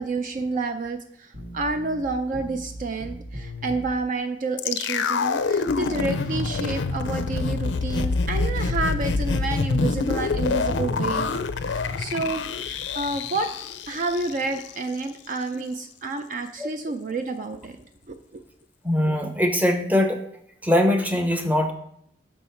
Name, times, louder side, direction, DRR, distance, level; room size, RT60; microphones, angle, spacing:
voice 1, 0.0-11.3 11.6-13.5 13.9-17.7 18.1-18.4, right 3 dB, 45° right, 7 dB, 0.4 m, -29 dB
sound 1, 1.3-3.9 5.7-9.3 10.3-12.0, left 1 dB, 75° right, 1.8 m, -37 dB
sound 2, 4.6-14.7 15.0-15.1, left 4 dB, 80° left, 0.5 m, -26 dB
voice 2, 18.8-20.2 20.6-21.7, left 1 dB, 10° right, 5 dB, 0.8 m, -22 dB
6.2 x 5.4 x 4.4 m, 0.70 s
head